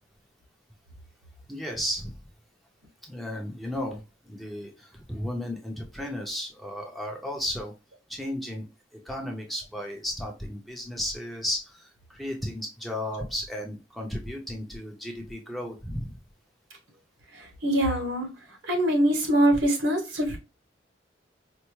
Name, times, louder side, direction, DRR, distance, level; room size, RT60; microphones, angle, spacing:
voice 1, 1.5-2.2 3.0-7.7 8.1-8.6 8.9-16.2, left 1 dB, ahead, 0.5 m, -34 dB
voice 2, 17.3-18.3 18.6-20.4, right 1 dB, 85° right, 1.2 m, -24 dB
4.4 x 2.0 x 2.9 m
head